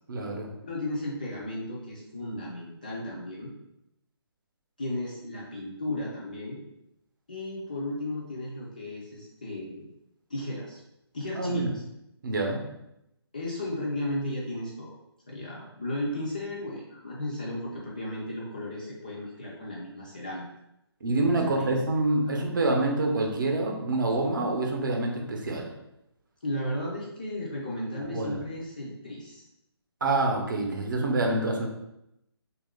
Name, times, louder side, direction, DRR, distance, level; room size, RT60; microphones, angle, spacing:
voice 1, 0.1-0.5 11.4-11.7 12.2-12.6 21.0-25.7 28.1-28.4 30.0-31.7, right 2 dB, 50° right, 1 dB, 0.6 m, -26 dB
voice 2, 0.6-3.5 4.8-6.6 7.3-9.9 10.3-10.8 11.1-11.7 13.3-14.9 15.3-20.4 21.4-21.8 22.3-22.5 26.4-29.5, left 1 dB, 20° left, -5 dB, 0.3 m, -34 dB
3.1 x 2.4 x 3.5 m, 0.85 s
hypercardioid pair, 170°, 14 cm